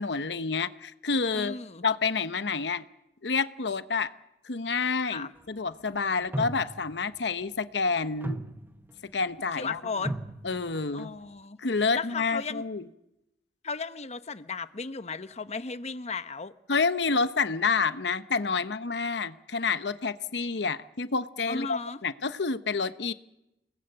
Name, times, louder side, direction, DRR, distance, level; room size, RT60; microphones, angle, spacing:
voice 1, 0.0-1.5 1.8-2.9 3.2-4.1 4.4-8.4 9.1-9.8 10.4-11.1 11.6-12.9 16.7-23.1, left 4 dB, 75° left, 0.9 m, -28 dB
voice 2, 1.3-1.8 5.0-5.3 9.5-10.1 10.9-12.6 13.6-16.5 21.5-22.0, left 4 dB, 40° left, 0.9 m, -35 dB
sound 1, 6.3-7.0 8.0-8.9 9.6-9.7 10.0-11.0, right 1 dB, 10° right, 0.9 m, -35 dB
28.5 x 19.0 x 8.0 m
head